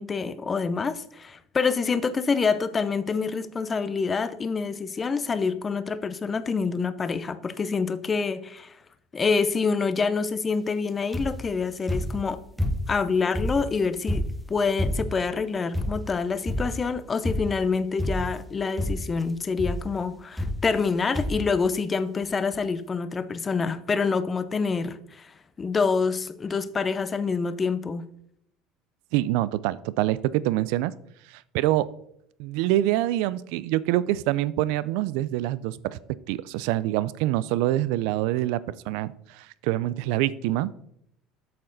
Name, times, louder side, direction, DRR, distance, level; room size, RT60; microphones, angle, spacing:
voice 1, 0.0-8.8 9.1-12.4 12.9-28.1, left 5 dB, 25° left, 0.6 m, -27 dB
sound 1, 11.1-11.5 11.9-13.0 13.3-15.3 15.7-16.2 16.5-16.9 17.2-17.7 18.0-18.5 18.8-19.2 19.6-19.9 20.4-20.9 21.1-21.5 22.2-22.3 22.5-22.6, left 1 dB, ahead, 0.9 m, -29 dB
voice 2, 29.1-30.9 31.3-31.9 32.4-36.0 36.3-40.7, right 15 dB, 80° right, 0.4 m, -25 dB
8.5 x 6.5 x 3.9 m
supercardioid pair, 115°, 0 cm